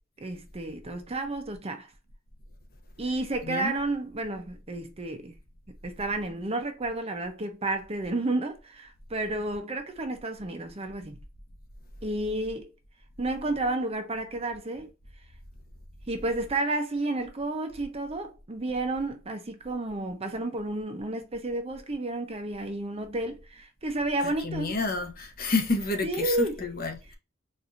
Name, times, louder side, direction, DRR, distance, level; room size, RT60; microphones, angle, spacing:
voice 1, 0.2-1.9 3.0-5.3 5.8-11.2 12.0-12.7 13.2-14.9 16.1-24.8 26.0-26.7, right 2 dB, 30° right, 0.6 m, -31 dB
voice 2, 24.4-27.2, left 3 dB, 45° left, 0.8 m, -29 dB
4.3 x 2.6 x 2.5 m
head